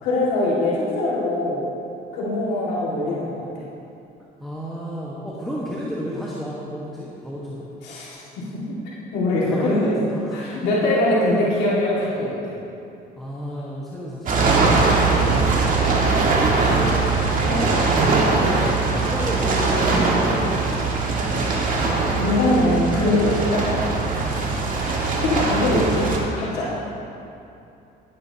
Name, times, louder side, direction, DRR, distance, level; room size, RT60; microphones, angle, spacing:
voice 1, 0.0-1.6 2.1-3.4 7.8-8.1 8.4-8.8 9.1-9.9 10.3-12.3 15.1-15.6 17.5-17.7 22.1-23.7 25.1-26.1 26.3-26.7, left 1 dB, 85° left, -7 dB, 2.1 m, -22 dB
voice 2, 4.4-7.7 9.4-10.5 13.2-14.6 16.6-17.1 18.9-20.9 24.2-24.4, equal, ahead, -6 dB, 1.3 m, -31 dB
sound 1, 14.3-26.2, right 3 dB, 50° right, 1.8 m, -21 dB
16.5 x 8.9 x 2.9 m, 2.7 s
cardioid pair, 110°, 17 cm